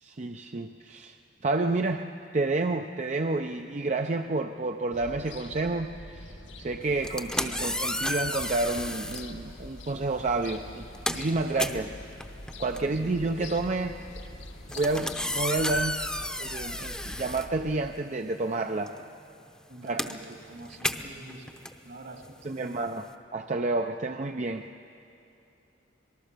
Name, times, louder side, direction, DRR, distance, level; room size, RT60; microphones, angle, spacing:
voice 1, 0.0-1.2 1.4-2.0 2.3-11.9 12.6-14.0 14.7-16.0 16.4-18.9 19.9-20.0 22.4-23.0 23.3-24.7, right 3 dB, 40° right, 5 dB, 0.6 m, -29 dB
sound 1, 4.9-17.9, left 1 dB, 85° left, 1.9 m, -45 dB
sound 2, 6.9-9.3 10.2-10.4 10.7-18.2 18.5-23.1, left 1 dB, 5° left, 0.8 m, -33 dB
voice 2, 12.7-13.3 19.7-22.9, right 2 dB, 70° right, 3 dB, 2.5 m, -46 dB
26.0 x 19.5 x 6.7 m, 2.8 s
head